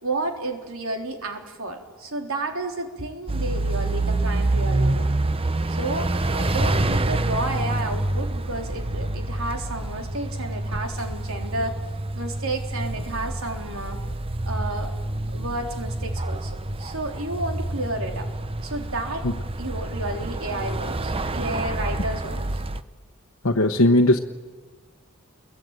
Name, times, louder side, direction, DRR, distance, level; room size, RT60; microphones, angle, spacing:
voice 1, 0.0-5.1 5.7-11.8 12.2-14.0 14.4-15.0 15.3-16.5 16.8-18.3 18.6-19.3 19.6-22.6, right 2 dB, 70° right, 3 dB, 3.7 m, -31 dB
sound 1, 3.3-22.8, right 2 dB, 25° right, 0.8 m, -27 dB
voice 2, 23.4-24.2, left 1 dB, 65° left, 2 dB, 1.2 m, -17 dB
28.5 x 22.5 x 9.1 m, 1.4 s
head